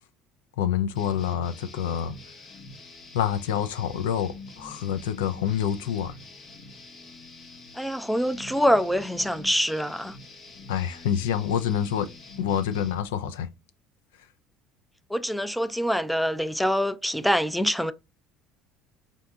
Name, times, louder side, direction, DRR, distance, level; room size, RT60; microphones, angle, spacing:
voice 1, 0.6-2.1 3.1-6.1 10.7-12.1 12.4-13.5, left 9 dB, 90° left, 0.3 m, -27 dB
sound 1, 1.0-13.0, left 2 dB, 60° left, 1.0 m, -46 dB
voice 2, 7.8-10.2 15.1-17.9, equal, ahead, 0.3 m, -25 dB
3.7 x 2.5 x 2.3 m
supercardioid pair, 80°, 0 cm